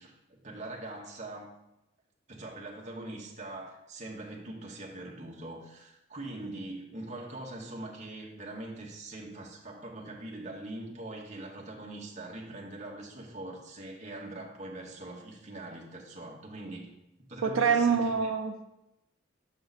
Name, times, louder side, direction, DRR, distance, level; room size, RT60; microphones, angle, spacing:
voice 1, 0.0-1.5 2.3-16.9 17.3-18.3, right 2 dB, 35° right, -1 dB, 1.2 m, -42 dB
voice 2, 17.4-18.6, right 6 dB, 85° right, 6 dB, 0.5 m, -26 dB
6.3 x 5.8 x 4.1 m, 0.89 s
head